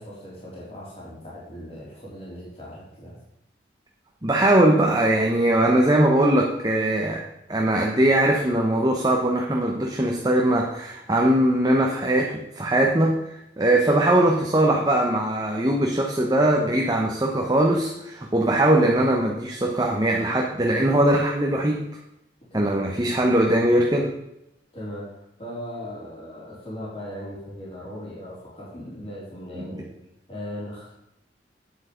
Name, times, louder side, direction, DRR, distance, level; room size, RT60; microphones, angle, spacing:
voice 1, 0.0-3.2 22.5-23.2 24.7-29.9 30.3-30.9, left 1 dB, 35° left, -6 dB, 3.8 m, -38 dB
voice 2, 4.2-21.8 22.5-24.1 29.5-29.6, right 1 dB, 20° right, 0 dB, 1.0 m, -21 dB
9.4 x 8.1 x 5.1 m, 0.85 s
head